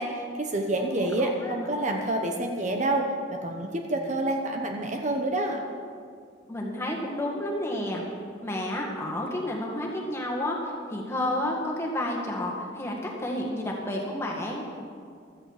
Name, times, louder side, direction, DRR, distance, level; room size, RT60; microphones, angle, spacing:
voice 1, 0.0-5.6, right 1 dB, 40° right, 3 dB, 1.0 m, -28 dB
voice 2, 6.5-8.0 8.4-14.6, left 1 dB, 15° left, -2 dB, 2.0 m, -30 dB
16.0 x 13.0 x 4.9 m, 2.2 s
head